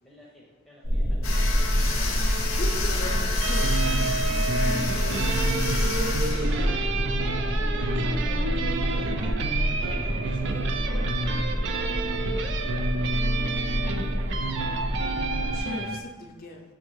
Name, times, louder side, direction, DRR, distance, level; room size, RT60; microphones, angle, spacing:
voice 1, 0.0-2.3 4.5-4.9 6.3-7.7 8.4-9.9 12.3-12.9, left 1 dB, ahead, -5 dB, 0.7 m, -51 dB
sound 1, 0.8-15.6, equal, 90° right, 1.1 m, -27 dB
sound 2, 1.2-7.2, left 4 dB, 80° left, 0.7 m, -32 dB
voice 2, 2.6-3.9 15.4-16.6, left 1 dB, 45° left, 0 dB, 0.4 m, -38 dB
sound 3, 3.4-16.0, right 3 dB, 60° right, 0.4 m, -29 dB
voice 3, 7.7-9.5 9.8-10.8, right 1 dB, 35° right, -4 dB, 1.2 m, -42 dB
7.0 x 2.4 x 3.0 m, 1.2 s
head